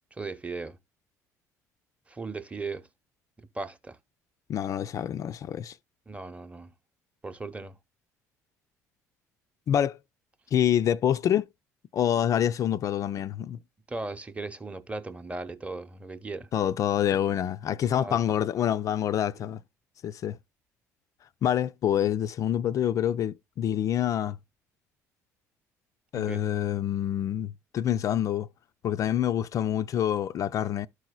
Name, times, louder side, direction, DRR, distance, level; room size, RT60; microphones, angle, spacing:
voice 1, 0.1-0.8 2.1-2.9 3.5-4.0 6.1-6.7 7.2-7.8 13.9-16.5 18.0-18.2 26.1-26.4, right 3 dB, 15° right, 0.8 m, -37 dB
voice 2, 4.5-5.8 9.7-10.0 10.5-11.4 11.9-13.6 16.5-19.6 20.0-20.4 21.4-24.4 26.1-28.5 28.8-30.9, left 10 dB, 40° left, 0.3 m, -26 dB
13.0 x 4.8 x 2.2 m
figure-of-eight pair, 55°, 9 cm